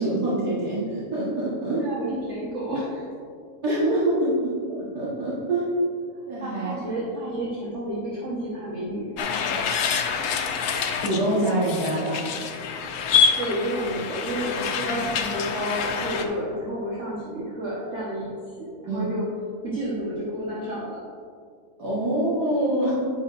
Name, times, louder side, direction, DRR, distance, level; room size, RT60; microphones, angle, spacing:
voice 1, 0.0-1.9 3.6-5.7 6.3-6.8 11.0-12.2 18.9-19.1 21.8-22.9, right 1 dB, 80° right, -8 dB, 2.1 m, -25 dB
voice 2, 1.8-3.0 6.4-9.1 13.4-18.3 18.6-19.2 19.6-21.0, right 1 dB, 50° right, -7 dB, 1.6 m, -30 dB
sound 1, 9.2-16.2, left 6 dB, 80° left, 1.2 m, -26 dB
9.5 x 9.3 x 2.5 m, 2.2 s
omnidirectional pair, 1.7 m